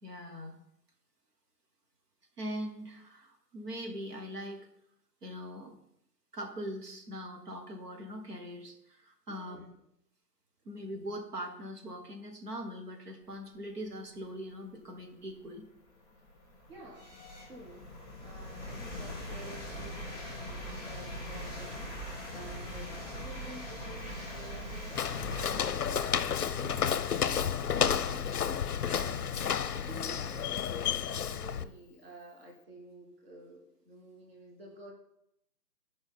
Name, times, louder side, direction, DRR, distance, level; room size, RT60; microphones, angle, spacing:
voice 1, 0.0-0.6 2.4-4.7 5.2-5.7 6.3-9.6 10.7-15.6 28.9-29.2, equal, 65° right, 3 dB, 1.8 m, -41 dB
voice 2, 9.3-9.9 16.7-17.9 18.2-22.0 22.3-28.3 28.8-29.4 29.7-34.9, right 1 dB, 35° right, -1 dB, 1.1 m, -51 dB
sound 1, 14.5-14.6 15.2-30.0, equal, 10° right, 1.9 m, -43 dB
Walk footsteps, 25.0-31.7, left 8 dB, 65° left, 0.6 m, -31 dB
10.5 x 5.2 x 3.9 m, 0.75 s
hypercardioid pair, 170°, 50 cm